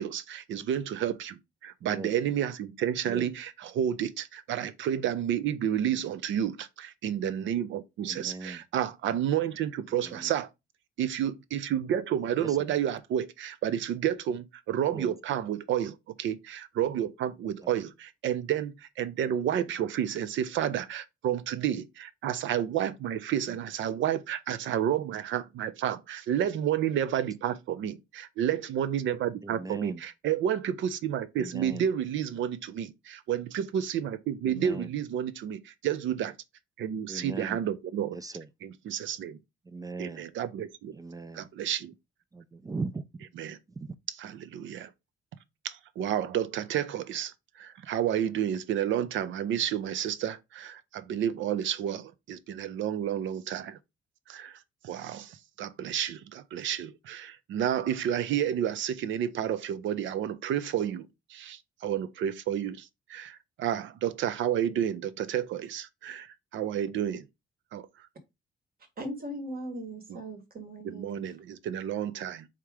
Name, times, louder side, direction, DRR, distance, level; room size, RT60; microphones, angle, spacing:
voice 1, 0.0-10.5 11.0-36.3 36.8-38.2 38.6-39.4 40.0-40.9 41.3-41.9 43.4-43.6 44.1-44.9 45.6-53.8 54.3-54.6 54.8-67.3 67.7-67.9 70.1-70.2 70.8-72.5, right 10 dB, 75° right, 0.6 m, -31 dB
voice 2, 8.0-8.6 10.0-10.3 12.4-12.6 14.9-15.1 17.6-17.7 29.4-30.0 31.4-31.9 34.4-34.9 37.1-37.6 38.1-38.5 39.7-40.2 40.9-41.5 42.3-43.1 43.8-43.9, right 3 dB, 20° right, 0.3 m, -39 dB
voice 3, 69.0-71.2, right 1 dB, 50° right, 1.6 m, -39 dB
3.7 x 2.8 x 4.8 m
cardioid pair, 90°, 20 cm